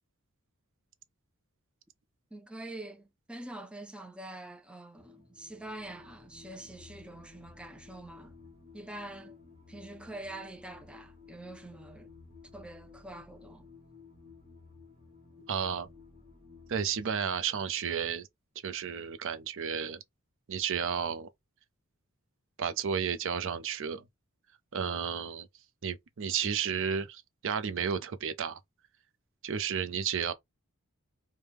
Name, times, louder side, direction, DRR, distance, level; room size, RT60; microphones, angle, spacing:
voice 1, 2.3-8.4 8.7-9.4 9.7-12.1 12.5-13.7, right 1 dB, 5° right, 0.3 m, -45 dB
sound 1, 4.9-17.1, left 4 dB, 25° right, 1.2 m, -54 dB
voice 2, 15.5-15.9 16.7-18.3 18.6-20.0 20.5-21.3 22.6-24.0 24.7-25.5 25.8-28.6 29.4-30.3, right 7 dB, 65° right, 0.5 m, -32 dB
3.4 x 2.1 x 3.0 m
head